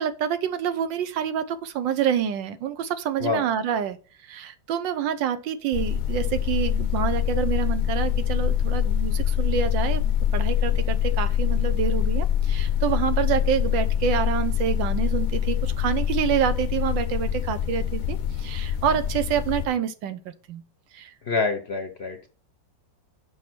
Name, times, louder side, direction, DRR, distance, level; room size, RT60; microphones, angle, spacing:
voice 1, 0.0-4.0 4.3-20.6 20.9-21.1, right 8 dB, 85° right, 12 dB, 1.5 m, -27 dB
sound 1, 5.7-19.7, left 10 dB, 70° left, 1.1 m, -24 dB
voice 2, 21.2-22.3, left 4 dB, 50° left, 6 dB, 0.8 m, -26 dB
6.4 x 5.5 x 6.0 m, 0.37 s
omnidirectional pair, 2.0 m